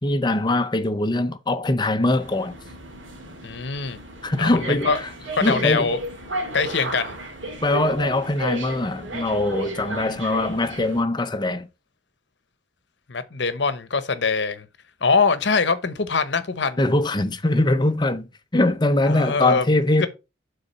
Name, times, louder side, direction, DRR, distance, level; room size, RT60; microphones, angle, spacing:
voice 1, 0.0-2.5 4.2-5.1 5.4-5.9 7.6-11.7 16.8-18.3 18.5-20.1, left 2 dB, 25° left, 0.6 m, -22 dB
sound 1, 2.2-11.0, right 2 dB, 90° right, 2.0 m, -34 dB
voice 2, 3.4-4.0 4.4-5.0 5.3-6.0 6.5-7.2 13.1-14.7 15.0-16.8 19.0-19.7 20.0-20.1, left 4 dB, 65° left, 0.9 m, -23 dB
6.9 x 3.9 x 5.6 m
head